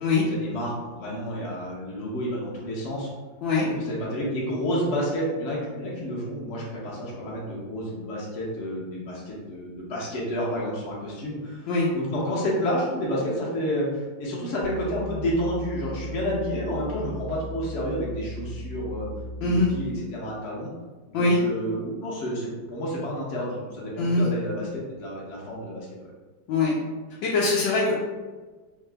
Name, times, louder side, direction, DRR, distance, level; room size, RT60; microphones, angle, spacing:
voice 1, 0.3-3.1 3.6-19.1 19.4-20.7 21.1-26.1, equal, 55° left, -5 dB, 0.8 m, -30 dB
sound 1, 14.6-19.9, equal, 75° right, 1.1 m, -37 dB
voice 2, 27.2-27.9, left 3 dB, 85° left, -5 dB, 1.4 m, -22 dB
3.7 x 2.8 x 3.3 m, 1.3 s
omnidirectional pair, 2.0 m